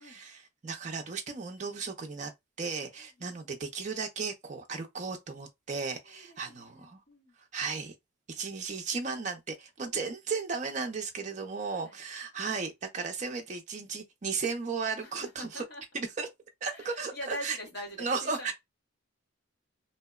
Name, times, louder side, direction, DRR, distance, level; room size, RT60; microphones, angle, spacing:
voice 1, 0.0-2.3 2.6-7.0 7.5-7.9 8.3-15.6 15.9-16.3 16.6-17.6 18.0-18.5, right 5 dB, 35° right, 0.4 m, -35 dB
voice 2, 3.0-3.4 6.1-7.4 11.6-12.0 15.0-15.8 16.6-18.5, equal, 55° left, 1.1 m, -44 dB
2.7 x 2.1 x 2.2 m
head